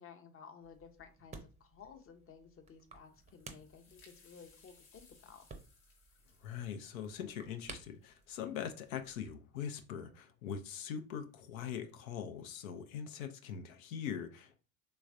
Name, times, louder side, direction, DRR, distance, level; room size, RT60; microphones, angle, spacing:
voice 1, 0.0-5.4, left 6 dB, 30° left, 0.7 m, -55 dB
sound 1, 0.6-9.3, right 4 dB, 15° right, 0.6 m, -56 dB
sound 2, 3.0-8.5, left 4 dB, 60° left, 1.2 m, -66 dB
voice 2, 6.4-14.6, left 8 dB, 75° left, 0.6 m, -42 dB
3.2 x 3.1 x 2.5 m
hypercardioid pair, 65°, 42 cm